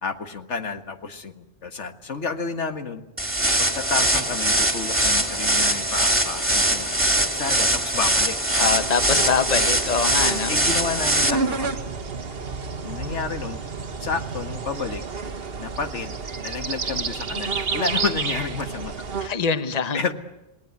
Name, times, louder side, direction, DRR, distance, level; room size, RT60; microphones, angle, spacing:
voice 1, 0.0-3.0 3.6-8.7 9.1-9.2 10.5-11.8 12.8-13.6 14.0-15.0 15.6-16.2 16.4-18.9 19.2-19.4 19.9-20.1, left 4 dB, 90° left, 7 dB, 2.0 m, -30 dB
sound 1, 3.2-11.3, right 1 dB, 10° right, 2.4 m, -22 dB
voice 2, 8.6-10.5 19.2-20.0, left 6 dB, 35° left, 10 dB, 1.2 m, -24 dB
sound 2, 8.7-19.3, right 4 dB, 55° right, 1.5 m, -30 dB
28.0 x 18.5 x 9.5 m, 0.95 s
omnidirectional pair, 1.2 m